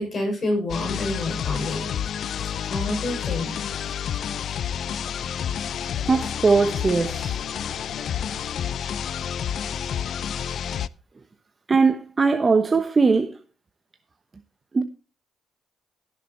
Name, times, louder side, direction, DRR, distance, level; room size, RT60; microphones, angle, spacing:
voice 1, 0.0-1.9 2.7-3.5, left 1 dB, 45° left, 6.4 m, -28 dB
sound 1, 0.7-10.9, left 8 dB, 65° left, 0.5 m, -29 dB
voice 2, 6.1-7.4 11.7-13.4 14.7-14.8, right 4 dB, 30° right, 1.0 m, -20 dB
16.0 x 6.9 x 4.3 m
cardioid pair, 90°, 0 cm